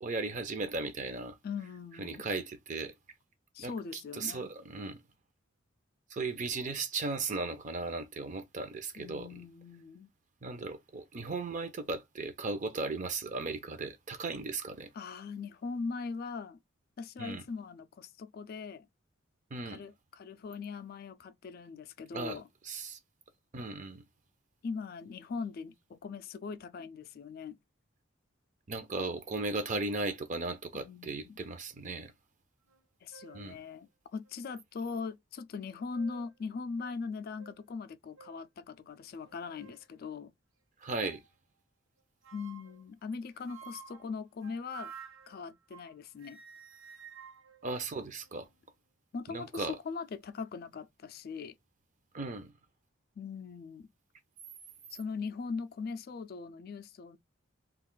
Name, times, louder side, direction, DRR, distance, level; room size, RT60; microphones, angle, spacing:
voice 1, 0.0-1.4 2.0-2.9 3.6-3.7 4.2-5.0 6.1-9.3 10.4-14.9 17.2-17.4 19.5-19.8 22.1-23.0 23.5-24.0 28.7-32.1 33.3-33.6 40.8-41.2 47.6-48.5 49.3-49.7 52.1-52.5, right 3 dB, 40° right, 0.6 m, -36 dB
voice 2, 1.4-2.3 3.5-4.5 9.0-10.1 14.9-16.6 17.0-18.9 19.7-22.5 24.6-27.6 30.7-31.4 33.0-40.3 42.3-44.9 45.3-46.4 49.1-51.5 53.2-53.9 54.9-57.2, left 5 dB, 50° left, 0.3 m, -40 dB
sound 1, 32.7-32.8 33.1-33.5 34.2-34.3 35.6-36.4 36.8-36.9 37.4-37.6 38.2-38.4 39.1-39.8 40.8-41.3 42.2-42.8 43.5-45.9 46.2-48.5, right 6 dB, 75° right, 0.8 m, -52 dB
2.4 x 2.3 x 3.7 m
head